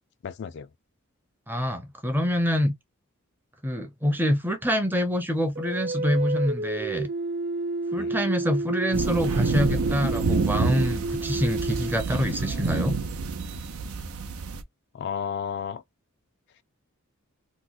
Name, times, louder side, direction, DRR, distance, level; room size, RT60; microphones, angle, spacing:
voice 1, 0.2-0.7 8.0-8.1 14.9-15.8, left 7 dB, 50° left, 0.3 m, -32 dB
voice 2, 1.5-2.7 3.6-7.1 7.9-13.0, equal, 10° right, 0.6 m, -26 dB
sound 1, 5.5-12.9, right 3 dB, 50° right, 0.9 m, -31 dB
sound 2, 8.9-14.6, right 4 dB, 85° right, 0.6 m, -28 dB
3.0 x 2.1 x 3.8 m
head